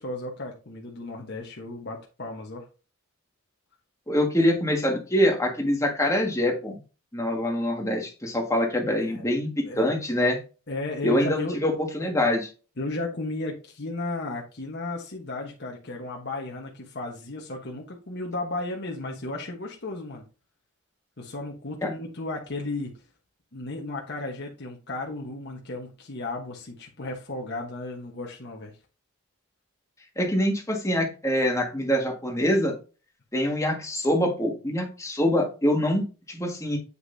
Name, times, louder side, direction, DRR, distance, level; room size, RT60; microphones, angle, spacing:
voice 1, 0.0-2.7 9.0-9.3 9.6-9.9 10.7-11.6 12.8-20.2 21.2-23.0 23.5-28.7, left 2 dB, 50° left, 0 dB, 1.2 m, -34 dB
voice 2, 4.1-6.8 7.1-10.4 11.0-12.5 21.8-21.9 30.1-32.7 33.3-36.8, left 1 dB, 15° left, 1 dB, 1.8 m, -24 dB
8.0 x 5.9 x 2.7 m, 0.33 s
head